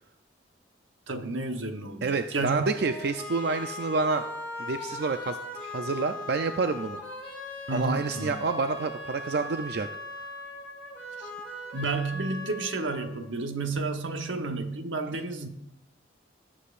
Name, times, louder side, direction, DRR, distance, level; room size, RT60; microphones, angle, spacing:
voice 1, 1.1-2.7 7.7-8.3 11.2-11.3 11.7-15.5, right 3 dB, 85° right, 6 dB, 1.0 m, -31 dB
voice 2, 2.0-4.2 4.6-7.0 7.7-9.9, right 4 dB, 60° right, 7 dB, 0.4 m, -28 dB
sound 1, 2.6-13.6, left 2 dB, 10° left, 3.7 m, -39 dB
18.0 x 7.4 x 2.5 m, 0.84 s
head